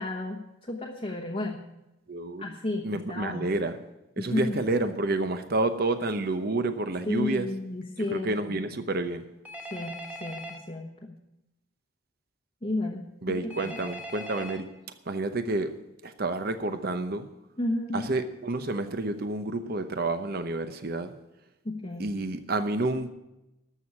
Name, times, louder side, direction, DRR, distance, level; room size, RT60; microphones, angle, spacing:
voice 1, 0.0-1.6 2.4-3.5 4.2-4.6 7.1-8.7 9.7-11.2 12.6-13.8 17.6-18.0 21.6-22.1, left 2 dB, 30° left, -1 dB, 1.1 m, -33 dB
voice 2, 2.1-2.4 2.8-3.7 4.2-7.5 8.1-9.2 13.2-14.7 15.1-15.7 16.0-17.3 17.9-21.1 22.0-23.1, right 2 dB, 50° right, 9 dB, 0.8 m, -29 dB
Telephone, 9.4-10.6 13.5-14.6, equal, 10° right, 1.3 m, -40 dB
13.0 x 6.4 x 9.7 m, 0.94 s
head